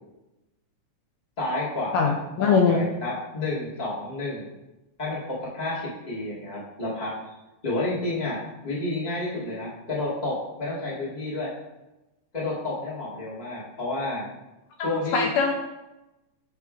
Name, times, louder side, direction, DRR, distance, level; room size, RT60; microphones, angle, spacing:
voice 1, 1.4-2.1 2.4-4.5 5.0-7.3 7.6-11.5 12.3-14.3 14.8-15.3, left 2 dB, 15° left, -7 dB, 1.7 m, -30 dB
voice 2, 1.9-2.8 14.8-15.5, left 5 dB, 80° left, 1 dB, 1.8 m, -22 dB
8.1 x 3.4 x 5.0 m, 0.99 s
omnidirectional pair, 3.5 m